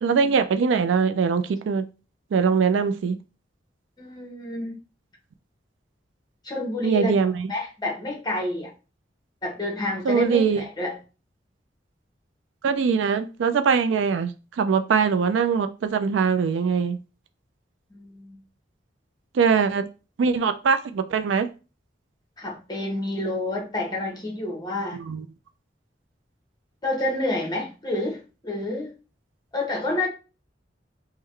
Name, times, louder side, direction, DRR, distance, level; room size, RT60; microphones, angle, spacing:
voice 1, 0.0-1.8 2.3-3.2 6.8-7.5 10.0-10.6 12.6-17.0 19.3-19.8 20.2-21.5 24.9-25.2, right 5 dB, 80° right, 0.3 m, -22 dB
voice 2, 4.0-4.8 6.4-7.1 7.5-8.7 9.4-11.0 17.9-18.4 22.4-25.0 26.8-28.9 29.5-30.1, left 1 dB, 20° left, 1.0 m, -29 dB
3.6 x 2.2 x 3.2 m
head